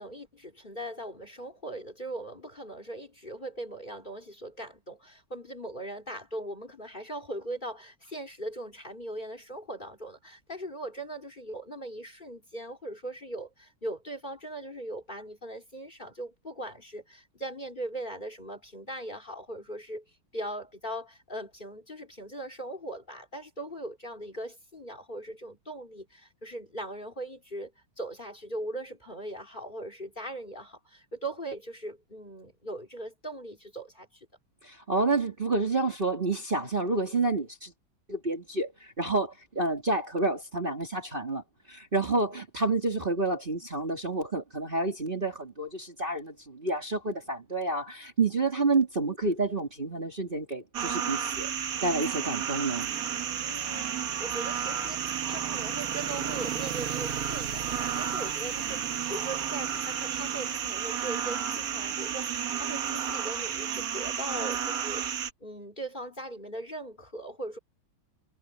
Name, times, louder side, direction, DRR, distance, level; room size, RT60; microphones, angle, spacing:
voice 1, 0.0-20.0 20.3-27.7 28.0-34.3 53.4-67.6, right 1 dB, 20° left, 3.2 m, -40 dB
voice 2, 34.6-37.7 38.1-41.4 41.7-51.5 51.8-52.9, right 3 dB, 25° right, 2.8 m, -29 dB
sound 1, 50.7-65.3, right 8 dB, 55° right, 1.2 m, -32 dB
omnidirectional pair, 2.3 m